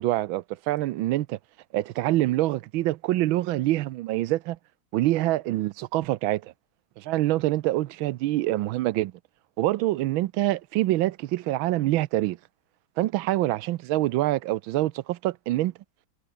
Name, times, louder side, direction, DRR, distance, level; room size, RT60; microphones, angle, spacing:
voice 1, 0.0-1.4 1.7-4.6 4.9-6.5 7.0-9.1 9.6-12.4 13.0-15.7, right 16 dB, 85° right, 1.4 m, -25 dB
omnidirectional pair, 2.2 m